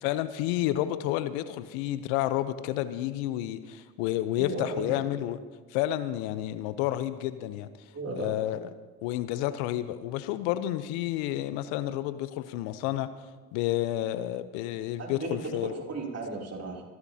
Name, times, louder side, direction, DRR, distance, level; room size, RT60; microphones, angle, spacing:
voice 1, 0.0-5.4 5.7-7.7 8.2-8.6 9.0-13.1 13.5-15.7, left 13 dB, 75° left, 13 dB, 0.8 m, -30 dB
voice 2, 4.4-5.0 7.9-8.4 15.0-16.8, right 2 dB, 35° right, -1 dB, 3.2 m, -35 dB
26.0 x 11.5 x 2.8 m, 1.4 s
hypercardioid pair, 55°, 42 cm